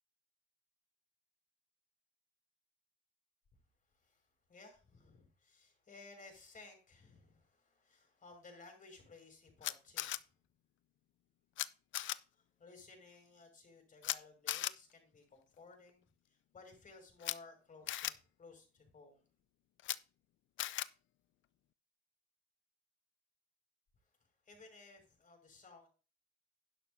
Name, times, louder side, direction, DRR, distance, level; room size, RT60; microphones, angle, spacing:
voice 1, 3.9-10.2 12.3-19.3 24.0-25.9, left 3 dB, 40° left, 3 dB, 5.9 m, -58 dB
Camera, 9.6-10.2 11.6-11.7 11.9-12.2 14.0-14.2 14.5-14.7 17.2-17.3 17.9-18.1 19.8-20.0 20.6-20.9, left 14 dB, 75° left, 0.6 m, -37 dB
11.5 x 10.5 x 2.7 m, 0.34 s
cardioid pair, 90°, 20 cm